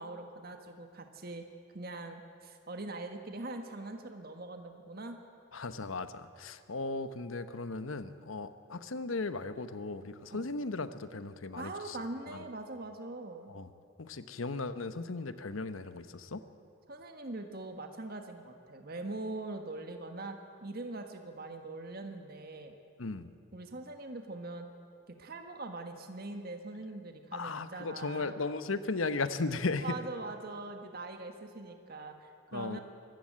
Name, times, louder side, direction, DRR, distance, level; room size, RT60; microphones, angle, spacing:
voice 1, 0.0-1.4 1.7-5.2 10.3-10.5 11.5-13.5 16.9-22.7 23.5-24.7 25.1-28.3 29.8-32.8, right 2 dB, 50° right, 5 dB, 1.5 m, -42 dB
voice 2, 5.5-12.0 12.3-12.4 13.5-13.7 14.0-16.4 23.0-23.3 27.3-29.9 32.5-32.8, left 3 dB, 85° left, 12 dB, 1.0 m, -36 dB
24.0 x 14.0 x 8.8 m, 2.4 s
head